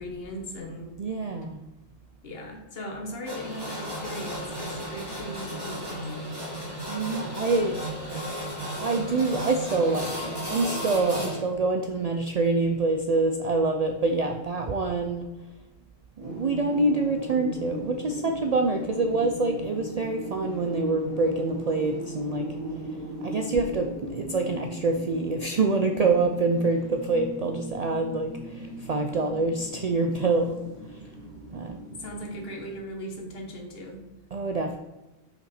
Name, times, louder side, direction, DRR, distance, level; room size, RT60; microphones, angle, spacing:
voice 1, 0.0-1.0 2.2-6.3 32.0-34.0, equal, 60° left, 1 dB, 1.3 m, -38 dB
voice 2, 1.0-1.6 6.9-7.7 8.8-15.3 16.2-22.5 23.2-28.3 28.9-30.6 31.5-31.8 34.3-34.8, right 3 dB, 55° right, 4 dB, 0.4 m, -26 dB
sound 1, 3.3-11.4, equal, 20° right, 1.7 m, -34 dB
sound 2, 16.2-32.8, right 1 dB, 75° right, 2.4 m, -38 dB
5.6 x 5.2 x 4.2 m, 1.0 s
omnidirectional pair, 1.1 m